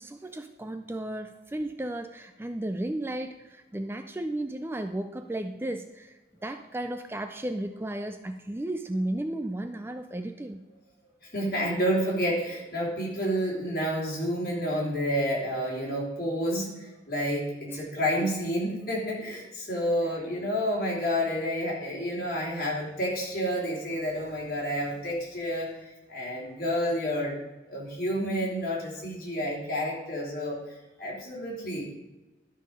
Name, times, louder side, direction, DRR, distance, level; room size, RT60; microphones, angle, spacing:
voice 1, 0.0-10.6 17.7-17.9 18.2-18.3, right 1 dB, 15° right, 8 dB, 0.3 m, -34 dB
voice 2, 11.2-27.4 27.7-31.9, equal, 50° left, -4 dB, 3.2 m, -30 dB
12.0 x 5.5 x 5.1 m, 1.1 s
head